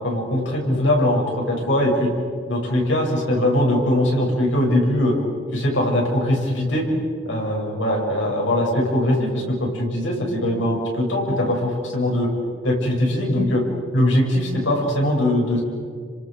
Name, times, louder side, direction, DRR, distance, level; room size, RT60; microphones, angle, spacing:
voice 1, 0.0-2.1 2.5-5.2 5.5-6.9 7.3-12.3 12.6-13.6 13.9-15.6, left 1 dB, 65° left, -1 dB, 7.6 m, -21 dB
30.0 x 26.0 x 6.9 m, 2.2 s
head